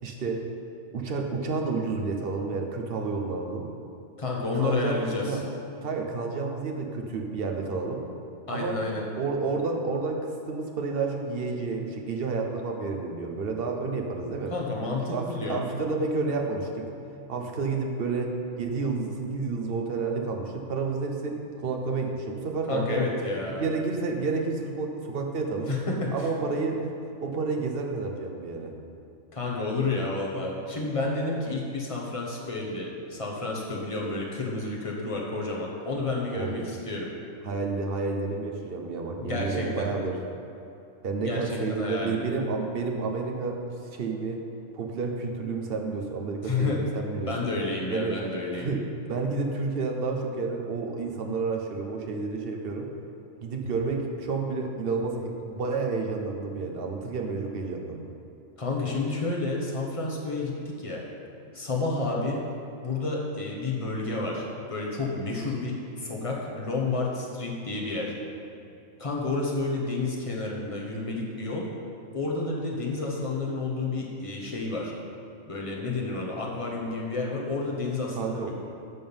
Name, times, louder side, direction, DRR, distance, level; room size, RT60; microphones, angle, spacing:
voice 1, 0.0-0.5 0.9-3.7 4.5-5.4 5.8-8.1 8.5-8.8 9.1-14.5 15.1-16.9 17.3-23.0 23.5-25.7 26.1-27.0 27.2-28.7 36.3-36.7 37.4-40.2 41.0-44.4 44.7-47.3 47.9-48.2 48.5-52.9 53.4-58.1 78.2-78.5, right 4 dB, 50° right, 2 dB, 1.0 m, -30 dB
voice 2, 4.2-5.2 8.5-9.0 14.5-15.6 22.7-23.7 25.7-26.3 29.3-37.1 39.2-39.9 41.2-41.4 41.7-42.2 46.4-46.8 47.2-48.7 58.6-61.0 61.5-62.4 62.8-68.1 69.0-71.7 72.1-74.9 75.5-78.5, left 3 dB, 25° left, -3 dB, 1.3 m, -30 dB
11.0 x 3.8 x 7.0 m, 2.7 s
omnidirectional pair, 1.4 m